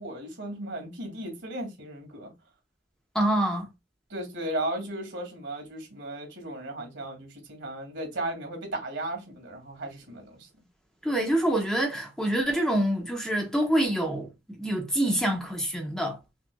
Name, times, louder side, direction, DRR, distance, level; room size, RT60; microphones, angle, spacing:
voice 1, 0.0-2.3 4.1-10.5, right 1 dB, 85° right, 2.2 m, -35 dB
voice 2, 3.1-3.7 11.0-14.3 14.6-16.2, right 1 dB, 5° left, 0.8 m, -26 dB
5.9 x 2.5 x 2.3 m
head